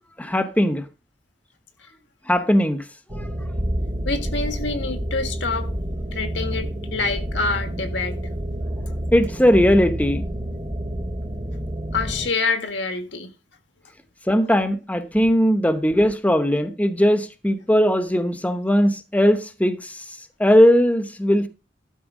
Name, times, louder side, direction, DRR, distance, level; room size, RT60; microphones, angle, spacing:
voice 1, 0.2-0.8 2.3-2.8 9.1-10.2 14.3-20.0 20.4-21.5, equal, 10° left, 0.9 m, -19 dB
sound 1, 3.1-12.3, equal, 30° right, 1.1 m, -28 dB
voice 2, 4.0-5.7 6.1-8.2 11.9-13.3, left 4 dB, 75° left, 1.6 m, -26 dB
12.5 x 4.4 x 7.3 m
head